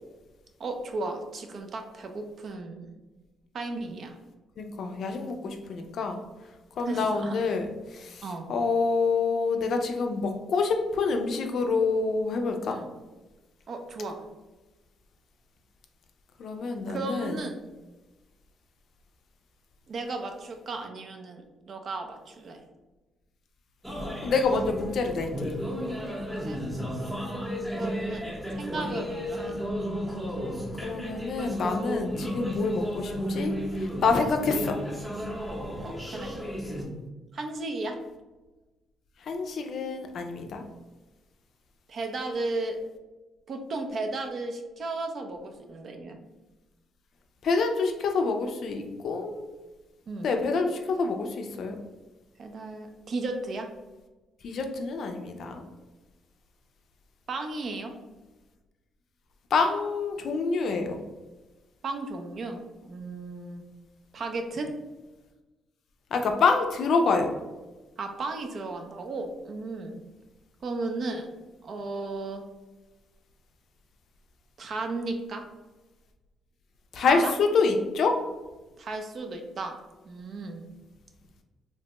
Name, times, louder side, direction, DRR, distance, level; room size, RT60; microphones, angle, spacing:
voice 1, 0.6-2.9 3.5-4.2 6.9-7.4 8.2-8.5 12.6-12.8 13.7-14.2 16.6-17.6 19.9-22.6 26.4-26.6 27.8-28.3 28.5-29.5 35.8-36.3 37.3-38.0 41.9-42.8 43.5-46.2 50.1-50.3 52.4-53.7 57.3-57.9 61.8-63.6 64.1-64.7 68.0-70.0 70.6-71.3 71.6-72.4 74.6-75.4 77.0-77.3 78.8-80.6, right 3 dB, 55° right, 4 dB, 0.5 m, -35 dB
voice 2, 4.6-6.2 6.8-12.8 16.4-17.4 24.2-25.5 30.8-34.8 39.2-40.6 47.4-49.4 50.2-51.8 54.4-55.6 59.5-61.0 66.1-67.3 76.9-78.2, left 4 dB, 65° left, 4 dB, 0.4 m, -27 dB
sound 1, 23.8-36.8, equal, 5° right, 0.7 m, -33 dB
3.1 x 2.2 x 2.9 m, 1.1 s
cardioid pair, 90°, 0 cm